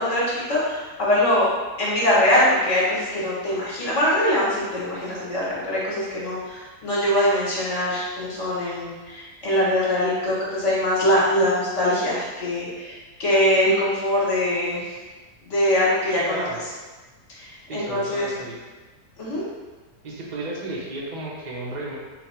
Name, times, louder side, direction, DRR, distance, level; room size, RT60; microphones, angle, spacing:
voice 1, 0.0-1.5 1.8-14.9 15.5-16.5 17.4-18.3 19.2-19.4, left 1 dB, 50° left, -6 dB, 1.5 m, -22 dB
voice 2, 17.7-18.6 20.0-22.0, right 1 dB, 55° right, -5 dB, 0.4 m, -33 dB
4.0 x 2.3 x 4.2 m, 1.3 s
omnidirectional pair, 1.7 m